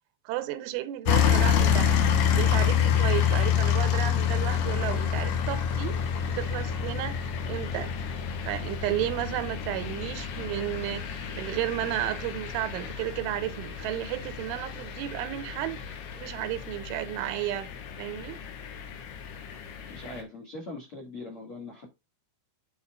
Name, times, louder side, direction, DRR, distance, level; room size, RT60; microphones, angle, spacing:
voice 1, 0.3-1.9 2.3-6.0 6.4-7.2 7.5-7.9 8.5-17.7 18.0-18.4, right 13 dB, 85° right, 3.1 m, -33 dB
sound 1, 1.1-20.2, left 8 dB, 75° left, 3.2 m, -28 dB
voice 2, 19.8-21.9, left 2 dB, 55° left, 1.5 m, -41 dB
11.0 x 4.3 x 2.4 m
omnidirectional pair, 5.6 m